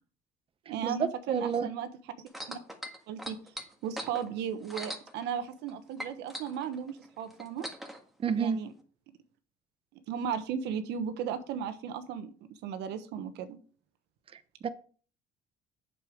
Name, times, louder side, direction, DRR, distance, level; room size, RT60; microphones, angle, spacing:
voice 1, 0.7-1.9 2.5-2.6 3.1-3.4 3.8-7.7 8.4-8.7 10.1-13.6, right 8 dB, 85° right, 1.1 m, -35 dB
voice 2, 1.3-1.7 8.2-8.6 14.3-14.7, right 6 dB, 35° right, 0.7 m, -30 dB
sound 1, 2.3-5.7 6.0-8.0 8.8-8.9, equal, ahead, 1.6 m, -41 dB
7.8 x 6.9 x 5.0 m
cardioid pair, 110°, 17 cm